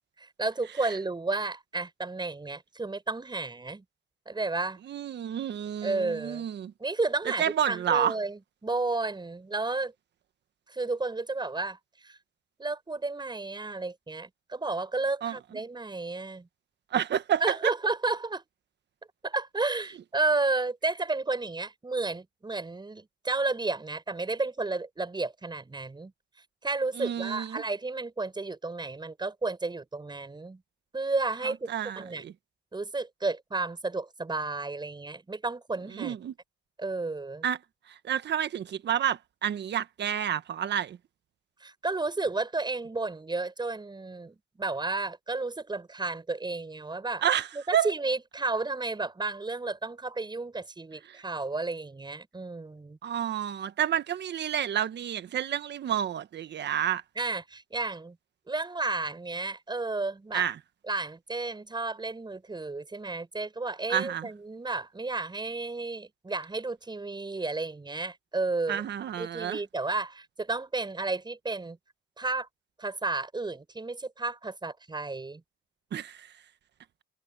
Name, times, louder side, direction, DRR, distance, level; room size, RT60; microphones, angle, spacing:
voice 1, 0.2-3.8 4.3-4.8 5.8-6.5 6.8-9.9 10.7-12.2 12.6-16.5 17.4-18.4 19.2-26.1 26.6-30.6 30.9-31.7 32.0-32.2 32.7-36.2 36.8-37.5 41.6-47.2 47.5-53.0 57.2-58.2 58.5-60.5 60.9-68.8 69.2-71.8 72.2-72.5 72.8-75.4, right 3 dB, 20° right, 5.9 m, -32 dB
voice 2, 4.8-6.7 7.4-8.1 15.2-15.4 16.9-17.7 26.9-27.6 31.4-32.3 36.0-36.3 37.4-37.6 38.0-41.0 47.2-47.9 51.1-51.2 53.0-57.0 60.3-60.6 63.9-64.3 68.7-69.6 75.9-76.3, right 9 dB, 60° right, 1.5 m, -29 dB
cardioid pair, 90°, 20 cm